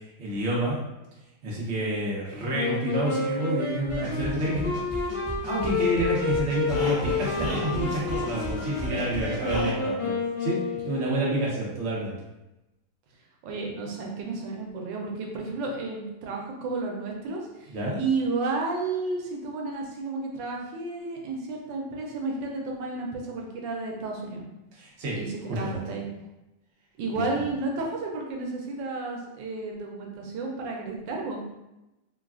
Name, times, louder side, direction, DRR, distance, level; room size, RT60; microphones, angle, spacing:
voice 1, 0.2-0.8 1.4-5.1 5.4-10.1 10.4-10.6 10.9-12.1 17.7-18.0 24.7-25.2 25.5-25.8 27.1-27.2, right 1 dB, 50° right, -5 dB, 0.8 m, -29 dB
Wind instrument woodwind instrument, 2.5-11.3, left 4 dB, 85° left, 0.4 m, -30 dB
sound 1, 3.9-9.7, equal, 10° left, 1.2 m, -35 dB
voice 2, 13.4-24.5 25.1-26.1 27.0-31.4, right 3 dB, 85° right, 0 dB, 1.3 m, -32 dB
3.2 x 2.3 x 2.3 m, 0.96 s
omnidirectional pair, 1.9 m